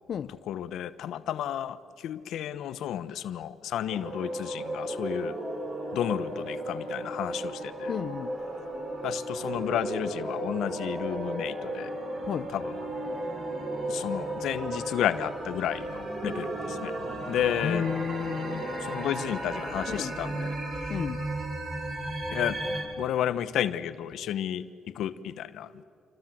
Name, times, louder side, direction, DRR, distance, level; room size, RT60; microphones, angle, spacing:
voice 1, 0.3-5.4 5.9-7.9 9.0-11.9 12.5-12.7 13.8-16.9 17.3-17.9 18.9-20.5 22.3-22.6 23.0-25.8, left 10 dB, 80° left, 1.0 m, -32 dB
sound 1, 3.9-22.8, right 1 dB, 55° right, 7.6 m, -34 dB
voice 2, 7.9-8.3 12.2-12.5 17.6-18.6 19.9-20.1 20.9-21.2, left 8 dB, 60° left, 0.7 m, -32 dB
28.0 x 25.0 x 7.7 m
cardioid pair, 90°, 0 cm